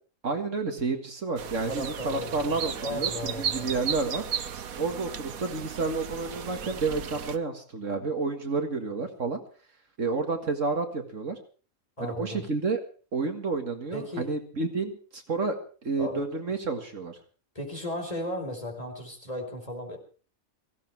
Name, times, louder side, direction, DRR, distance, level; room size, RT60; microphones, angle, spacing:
voice 1, 0.2-4.3 4.8-9.4 10.0-11.4 12.0-12.8 13.1-15.6 15.8-17.2, right 4 dB, 65° right, 5 dB, 2.2 m, -30 dB
sound 1, 1.4-7.4, right 8 dB, 90° right, 1.4 m, -35 dB
voice 2, 1.7-3.7 12.0-12.5 13.9-14.3 16.0-16.3 17.5-20.0, left 1 dB, 25° left, 2 dB, 4.4 m, -35 dB
17.5 x 16.0 x 4.6 m, 0.39 s
omnidirectional pair, 1.4 m